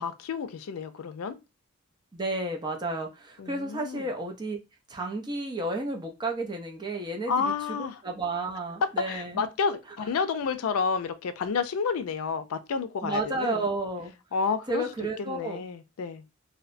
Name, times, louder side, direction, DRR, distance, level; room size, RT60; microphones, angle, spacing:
voice 1, 0.0-1.3 3.4-4.0 7.3-8.0 8.8-13.6 14.3-14.8 15.2-16.2, left 5 dB, 85° left, 0.4 m, -30 dB
voice 2, 2.1-4.6 4.9-7.8 8.0-9.4 13.0-14.1 14.7-15.6, right 2 dB, 20° right, 0.5 m, -32 dB
2.7 x 2.1 x 2.5 m
head